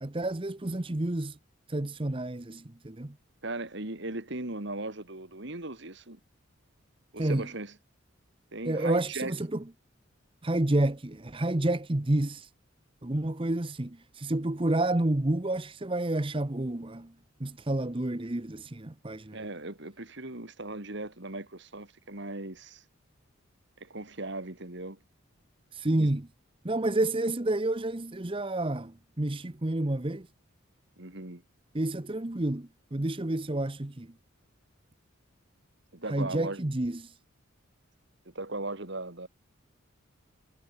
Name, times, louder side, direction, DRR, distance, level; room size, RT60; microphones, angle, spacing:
voice 1, 0.0-1.4 1.7-3.1 7.2-7.5 8.7-9.6 10.4-12.5 13.0-17.1 17.4-19.4 25.7-26.3 26.6-30.3 31.7-34.1 36.1-37.2, right 1 dB, 25° right, 0.9 m, -29 dB
voice 2, 3.4-6.2 7.1-7.7 8.5-9.3 19.3-22.8 23.8-25.0 26.0-26.1 31.0-31.4 35.9-36.6 38.3-39.3, right 2 dB, 55° right, 2.6 m, -38 dB
head